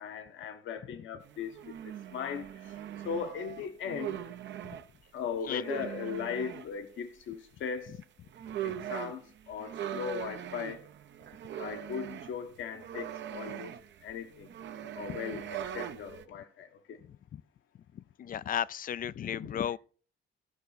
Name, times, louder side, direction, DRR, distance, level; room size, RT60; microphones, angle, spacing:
voice 1, 0.0-1.8 2.1-2.5 3.0-4.2 5.1-8.0 8.6-10.8 11.6-13.7 14.0-14.5 15.0-17.0 19.4-19.6, left 7 dB, 75° left, 1.3 m, -38 dB
sound 1, 1.2-4.8 5.5-6.7 8.0-8.1 8.3-16.2, right 10 dB, 65° right, 0.8 m, -41 dB
voice 2, 18.2-19.8, left 9 dB, 45° left, 0.4 m, -33 dB
15.0 x 5.8 x 4.0 m
cardioid pair, 90°, 20 cm